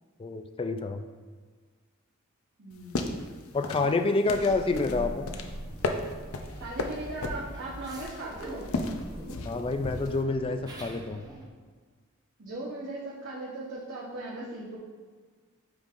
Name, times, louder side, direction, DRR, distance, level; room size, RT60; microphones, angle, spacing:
voice 1, 0.2-1.0 3.5-5.3 9.4-11.2, left 3 dB, 25° left, 8 dB, 0.3 m, -28 dB
voice 2, 2.6-3.4 6.6-8.6 12.4-14.8, right 2 dB, 55° right, -7 dB, 1.1 m, -38 dB
sound 1, 2.7-10.2, left 2 dB, 80° left, 0.6 m, -35 dB
sound 2, 4.3-11.5, right 1 dB, 15° right, 0.7 m, -42 dB
8.0 x 5.2 x 2.5 m, 1.5 s
head